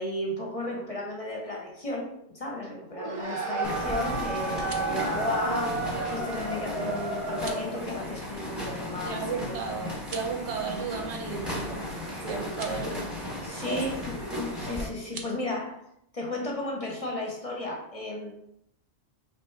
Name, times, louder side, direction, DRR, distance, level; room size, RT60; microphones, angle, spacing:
voice 1, 0.0-9.6 13.4-15.8 16.1-18.3, left 1 dB, 40° left, -1 dB, 0.7 m, -34 dB
sound 1, 2.9-7.8, right 3 dB, 35° right, 0.6 m, -32 dB
sound 2, 3.6-14.9, left 1 dB, ahead, 0.8 m, -35 dB
sound 3, 4.4-5.0 7.3-7.7 10.0-10.4 12.4-12.8 15.0-15.3, right 4 dB, 65° right, 0.8 m, -43 dB
voice 2, 9.0-11.8 12.3-13.1, right 5 dB, 80° right, 3 dB, 1.0 m, -34 dB
3.1 x 2.9 x 4.4 m, 0.75 s
omnidirectional pair, 1.2 m